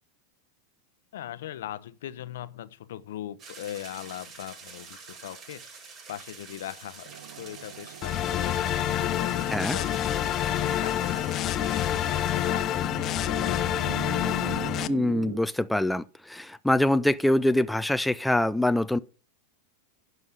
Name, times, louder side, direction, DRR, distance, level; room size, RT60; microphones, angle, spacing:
voice 1, 1.1-8.7 9.0-13.7, left 12 dB, 75° left, 0.8 m, -40 dB
sound 1, 3.4-12.6, right 5 dB, 40° right, 4.4 m, -46 dB
sound 2, 7.0-15.4, right 11 dB, 70° right, 0.7 m, -42 dB
sound 3, 8.0-14.9, left 11 dB, 40° left, 0.7 m, -27 dB
voice 2, 14.9-19.0, left 1 dB, 5° left, 0.5 m, -24 dB
11.0 x 5.4 x 7.9 m
hypercardioid pair, 115°, 0 cm